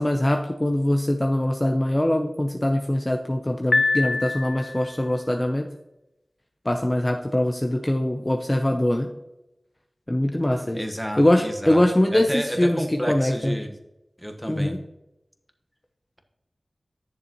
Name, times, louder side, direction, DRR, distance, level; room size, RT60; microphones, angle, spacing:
voice 1, 0.0-5.7 6.6-9.1 10.1-10.8 11.2-13.5 14.5-14.8, left 1 dB, 25° left, 3 dB, 0.7 m, -22 dB
Piano, 3.7-5.0, left 3 dB, 60° left, 0.6 m, -24 dB
voice 2, 10.7-11.8 12.1-13.8 14.2-14.8, equal, ahead, 4 dB, 1.3 m, -30 dB
10.5 x 6.9 x 3.0 m, 0.93 s
wide cardioid pair, 45°, 0 cm